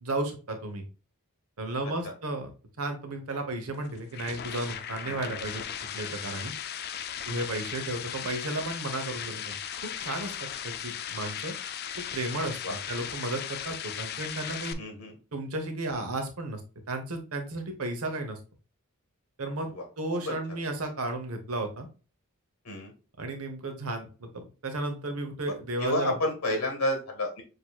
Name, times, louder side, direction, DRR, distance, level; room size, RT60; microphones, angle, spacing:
voice 1, 0.0-0.8 1.6-2.5 2.8-5.6 5.9-6.5 7.3-10.3 10.6-11.5 12.1-14.8 15.3-16.6 16.9-18.4 19.4-19.7 20.0-21.9 23.2-26.2, right 2 dB, 75° right, 5 dB, 1.0 m, -33 dB
sound 1, 3.7-14.7, left 9 dB, 45° left, 0.4 m, -37 dB
voice 2, 5.0-5.4 12.6-12.8 14.8-15.1 19.7-19.9 20.1-20.4 22.6-22.9 25.5-25.6 25.8-27.4, left 1 dB, 80° left, 3 dB, 1.7 m, -31 dB
6.5 x 2.9 x 2.3 m, 0.35 s
head